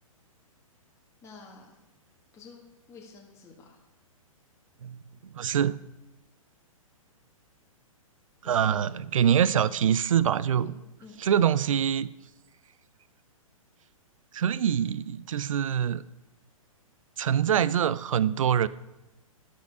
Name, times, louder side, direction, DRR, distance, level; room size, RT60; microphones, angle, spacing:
voice 1, 1.2-1.7 2.3-3.8 8.4-9.0 10.6-10.7 11.0-11.2, left 4 dB, 15° left, -1 dB, 1.4 m, -48 dB
voice 2, 5.3-5.8 8.4-10.7 11.2-12.1 14.3-16.0 17.2-18.7, right 9 dB, 65° right, 19 dB, 0.4 m, -24 dB
12.0 x 6.2 x 4.7 m, 0.98 s
figure-of-eight pair, 115°, 18 cm